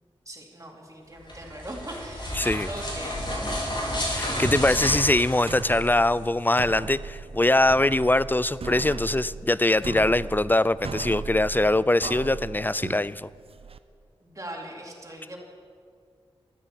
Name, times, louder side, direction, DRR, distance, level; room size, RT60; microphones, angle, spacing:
voice 1, 0.3-3.3 14.2-15.4, right 1 dB, 30° right, -2 dB, 4.0 m, -40 dB
sound 1, 1.1-6.1, equal, 50° left, 5.1 m, -31 dB
voice 2, 2.3-2.7 4.1-13.3, left 2 dB, 20° left, 18 dB, 0.4 m, -22 dB
sound 2, 4.3-13.8, right 5 dB, 65° right, 0.7 m, -37 dB
13.0 x 10.0 x 8.9 m, 2.2 s
cardioid pair, 45°, 11 cm